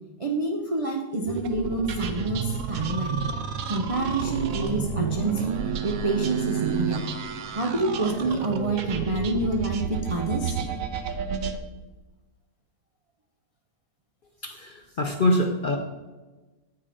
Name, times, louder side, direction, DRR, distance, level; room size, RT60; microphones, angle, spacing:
voice 1, 0.2-3.2 3.7-7.0 7.5-10.6, right 2 dB, 50° right, 2 dB, 0.4 m, -27 dB
sound 1, 1.3-11.6, right 6 dB, 70° right, 1.0 m, -30 dB
voice 2, 14.4-15.8, left 1 dB, 55° left, 3 dB, 0.6 m, -24 dB
8.6 x 4.5 x 5.0 m, 1.2 s
omnidirectional pair, 1.5 m